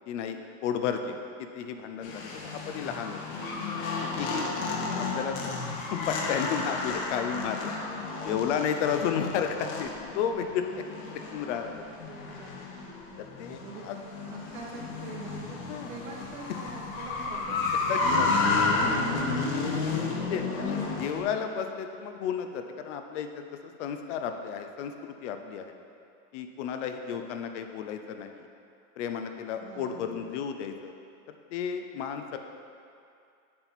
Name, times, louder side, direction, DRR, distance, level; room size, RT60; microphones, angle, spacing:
voice 1, 0.1-3.2 4.2-4.5 5.0-5.5 5.9-7.7 8.2-10.8 11.1-11.8 13.2-14.0 15.7-16.0 17.9-18.6 20.3-25.7 26.3-28.5 29.0-30.9 31.3-32.4, left 7 dB, 60° left, 6 dB, 0.7 m, -33 dB
sound 1, 2.0-21.2, left 3 dB, 85° left, 1.1 m, -32 dB
voice 2, 3.5-4.4 12.0-12.5 12.8-13.8 14.2-15.6 15.9-17.8 18.5-19.4 20.2-21.2 29.6-30.3, right 4 dB, 90° right, 0 dB, 1.3 m, -46 dB
7.4 x 4.5 x 4.1 m, 2.5 s
supercardioid pair, 155°, 40 cm